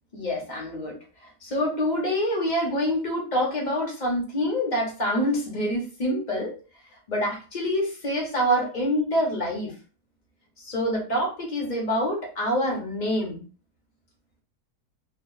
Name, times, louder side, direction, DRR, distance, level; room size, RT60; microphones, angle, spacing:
voice 1, 0.1-1.0 1.4-6.5 7.1-9.7 10.6-13.4, equal, 35° left, -1 dB, 0.9 m, -26 dB
2.5 x 2.4 x 3.8 m, 0.37 s
omnidirectional pair, 1.6 m